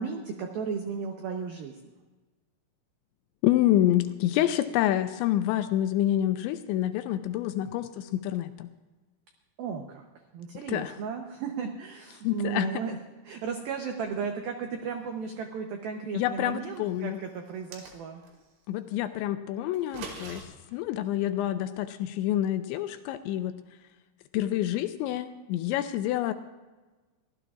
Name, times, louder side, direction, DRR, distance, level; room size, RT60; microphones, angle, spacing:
voice 1, 0.0-1.8 9.6-10.1 10.3-13.0 13.3-18.2, right 6 dB, 90° right, 4 dB, 2.0 m, -35 dB
voice 2, 3.4-8.7 10.5-11.0 12.2-12.7 16.1-17.2 18.7-20.4 20.7-23.5 24.3-26.3, left 13 dB, 85° left, 9 dB, 2.7 m, -27 dB
sound 1, 17.5-18.4 19.7-20.4, right 4 dB, 65° right, 4.1 m, -42 dB
23.0 x 16.0 x 2.4 m, 1.2 s
omnidirectional pair, 5.5 m